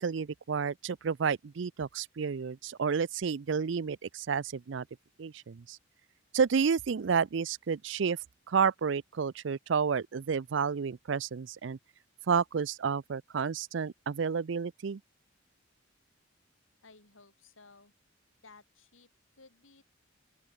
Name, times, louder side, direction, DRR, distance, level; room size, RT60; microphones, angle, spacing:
voice 1, 0.0-4.8 5.2-5.8 6.3-8.2 8.5-11.8 12.3-15.0, right 6 dB, 65° right, 0.5 m, -30 dB
voice 2, 16.8-17.9 18.4-19.8, left 3 dB, 80° left, 3.8 m, -58 dB
open air
head